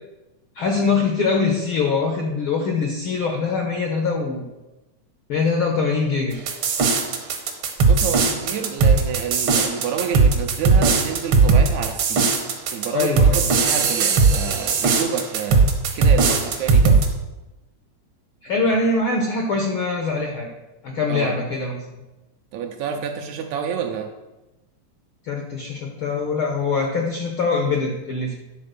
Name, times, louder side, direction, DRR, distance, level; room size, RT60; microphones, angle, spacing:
voice 1, 0.5-4.5 5.3-6.4 12.9-13.5 18.4-20.5 20.8-21.8 25.2-28.3, left 4 dB, 70° left, 2 dB, 1.2 m, -23 dB
sound 1, 6.5-17.1, right 4 dB, 60° right, 1.4 m, -18 dB
voice 2, 7.9-12.3 12.7-15.7 15.9-17.0 21.1-21.3 22.5-24.1, right 7 dB, 80° right, 5 dB, 1.8 m, -28 dB
10.5 x 4.2 x 6.7 m, 1.1 s
omnidirectional pair, 3.6 m